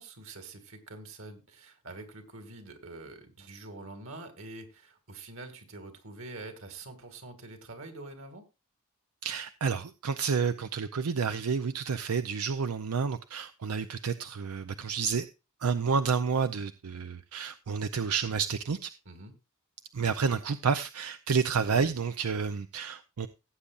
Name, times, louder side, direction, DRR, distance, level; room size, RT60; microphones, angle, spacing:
voice 1, 0.0-8.4 19.1-19.3, right 2 dB, 65° right, 2.4 m, -45 dB
voice 2, 9.2-15.3 15.6-18.9 19.9-23.3, right 5 dB, 90° right, 0.6 m, -30 dB
17.0 x 8.5 x 2.5 m
head